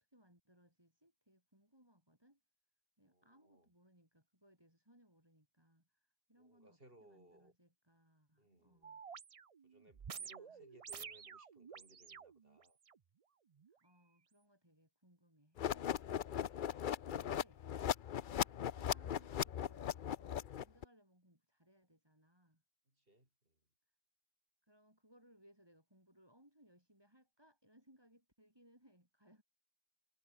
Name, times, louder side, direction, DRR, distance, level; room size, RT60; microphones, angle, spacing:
voice 1, 0.0-2.4 3.0-6.0 6.3-9.0 10.1-10.6 13.8-16.3 17.2-17.6 18.4-22.6 24.7-29.4, equal, 25° right, 5.2 m, -69 dB
voice 2, 3.0-3.7 6.4-7.5 8.4-9.0 9.6-12.8 18.2-18.4 22.9-23.6, right 1 dB, 65° right, 7.9 m, -66 dB
sound 1, 8.8-13.0 13.6-13.7, right 6 dB, 40° right, 0.6 m, -51 dB
sound 2, 15.6-20.8, left 9 dB, 60° left, 0.8 m, -38 dB
omnidirectional pair, 1.0 m